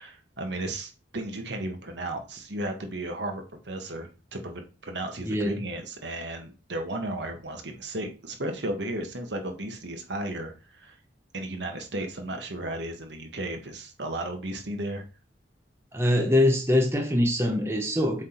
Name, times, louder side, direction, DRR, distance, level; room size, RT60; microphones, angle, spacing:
voice 1, 0.0-11.0 11.3-15.0, right 1 dB, 65° right, 1.4 m, -34 dB
voice 2, 5.3-5.6 15.9-18.2, left 1 dB, 15° right, 1.0 m, -23 dB
7.7 x 3.7 x 4.5 m
head